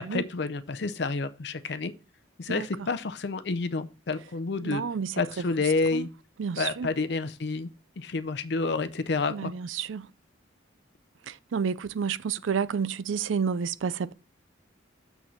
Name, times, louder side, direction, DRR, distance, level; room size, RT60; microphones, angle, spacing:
voice 1, 0.0-1.9 2.4-4.8 5.2-6.1 6.6-7.7 8.0-9.5, left 3 dB, 55° left, 0.5 m, -29 dB
voice 2, 4.6-5.2 5.9-6.1 6.4-6.9 9.3-10.1 11.3-14.1, right 6 dB, 75° right, 0.4 m, -30 dB
7.0 x 6.3 x 4.4 m
head